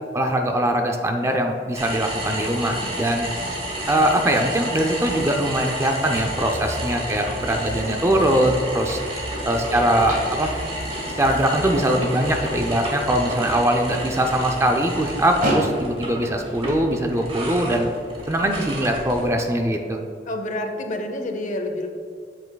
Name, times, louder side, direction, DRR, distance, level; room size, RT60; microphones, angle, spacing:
voice 1, 0.1-3.3 3.9-10.5 11.2-17.9 18.3-20.0, right 1 dB, 15° right, 3 dB, 0.4 m, -22 dB
sound 1, 1.7-19.5, right 1 dB, 30° right, 1.3 m, -31 dB
sound 2, 2.4-16.8, right 1 dB, 55° right, 1.5 m, -35 dB
voice 2, 9.7-10.9 20.3-21.9, left 1 dB, 45° left, 5 dB, 0.7 m, -30 dB
7.9 x 7.4 x 2.3 m, 2.3 s
head